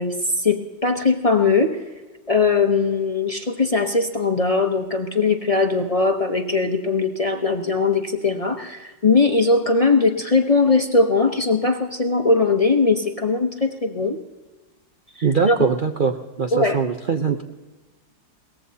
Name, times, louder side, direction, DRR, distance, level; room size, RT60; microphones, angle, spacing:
voice 1, 0.0-1.8 2.3-14.2 15.2-15.6 16.5-16.8, left 3 dB, 30° left, 3 dB, 0.6 m, -20 dB
voice 2, 15.2-17.4, right 5 dB, 85° right, 4 dB, 0.4 m, -22 dB
22.5 x 18.5 x 2.8 m, 1.2 s
omnidirectional pair, 2.0 m